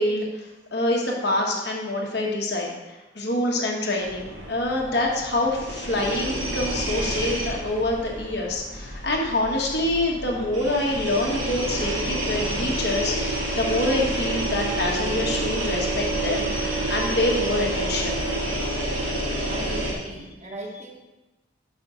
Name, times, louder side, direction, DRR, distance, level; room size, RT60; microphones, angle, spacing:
voice 1, 0.0-18.2 18.6-18.7, left 1 dB, 55° left, -1 dB, 1.3 m, -26 dB
sound 1, 4.0-19.9, right 1 dB, 85° right, 2.6 m, -29 dB
voice 2, 19.5-21.0, right 1 dB, 35° right, -1 dB, 1.2 m, -38 dB
5.5 x 5.2 x 6.3 m, 1.1 s
head